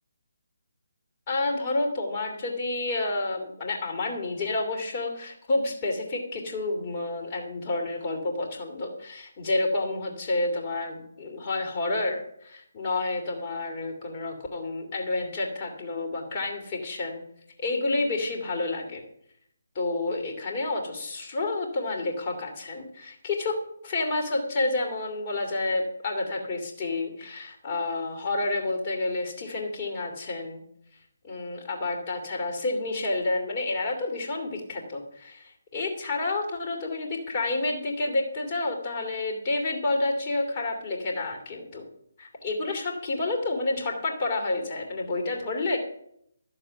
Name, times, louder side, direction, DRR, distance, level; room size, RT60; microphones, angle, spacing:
voice 1, 1.3-17.2 17.6-19.0 19.7-23.6 23.8-30.6 31.2-41.9 42.2-45.8, left 2 dB, 30° left, 1 dB, 2.8 m, -29 dB
12.5 x 7.3 x 5.8 m, 0.72 s
figure-of-eight pair, 145°, 0 cm